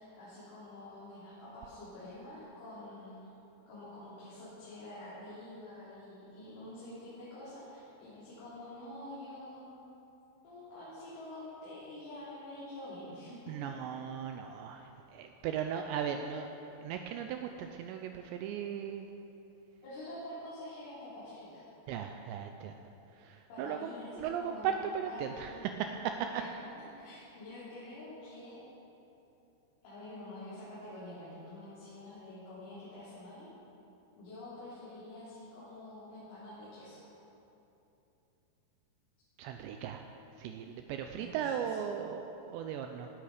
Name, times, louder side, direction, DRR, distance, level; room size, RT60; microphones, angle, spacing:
voice 1, 0.0-3.2 3.7-9.8 10.4-13.4 19.8-21.6 23.5-25.8 26.3-26.7 27.0-28.6 29.8-33.5 34.2-37.1 41.1-41.7, left 1 dB, 75° left, -12 dB, 6.0 m, -47 dB
voice 2, 13.5-16.5 16.8-19.1 21.9-22.8 23.1-26.4 39.4-40.0 40.4-43.1, right 8 dB, 90° right, 5 dB, 2.5 m, -37 dB
17.5 x 11.5 x 5.0 m, 3.0 s
omnidirectional pair, 5.6 m